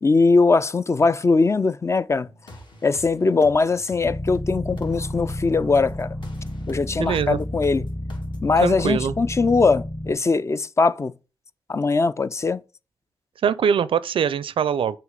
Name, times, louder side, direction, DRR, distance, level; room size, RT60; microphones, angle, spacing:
voice 1, 0.0-2.3 2.8-6.1 6.7-7.8 8.4-11.1 11.7-12.6, left 4 dB, 30° left, 0.4 m, -20 dB
sound 1, 2.3-8.4, left 1 dB, 60° left, 1.9 m, -44 dB
sound 2, 4.0-10.1, left 1 dB, 15° left, 0.8 m, -31 dB
voice 2, 7.0-7.4 8.6-9.2 13.4-15.0, right 7 dB, 75° right, 0.4 m, -22 dB
6.4 x 2.9 x 5.1 m
cardioid pair, 60°, 9 cm